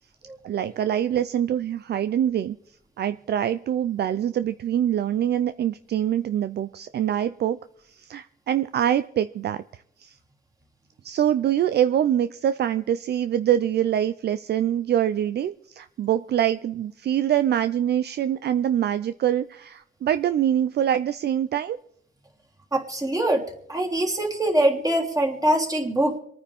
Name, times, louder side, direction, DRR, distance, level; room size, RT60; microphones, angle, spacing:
voice 1, 0.4-2.6 3.0-7.6 7.9-10.2 11.0-21.8, right 10 dB, 55° right, 12 dB, 0.5 m, -24 dB
voice 2, 22.7-23.4 23.7-26.2, right 1 dB, 20° right, 0 dB, 3.3 m, -23 dB
27.0 x 9.6 x 3.6 m, 0.67 s
cardioid pair, 90°, 20 cm